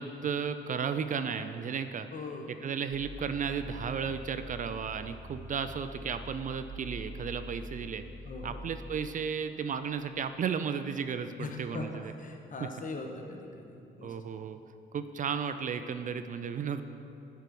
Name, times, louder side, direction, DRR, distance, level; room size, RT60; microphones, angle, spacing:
voice 1, 0.0-2.1 2.6-8.0 8.4-12.1 14.0-14.6 14.9-16.8, right 6 dB, 40° right, 10 dB, 0.4 m, -34 dB
voice 2, 2.1-2.5 8.2-8.6 11.4-14.2, left 3 dB, 40° left, 3 dB, 1.0 m, -40 dB
sound 1, 2.9-9.0, left 1 dB, 90° right, 1.4 m, -44 dB
9.1 x 4.6 x 5.2 m, 2.7 s
cardioid pair, 90°, 20 cm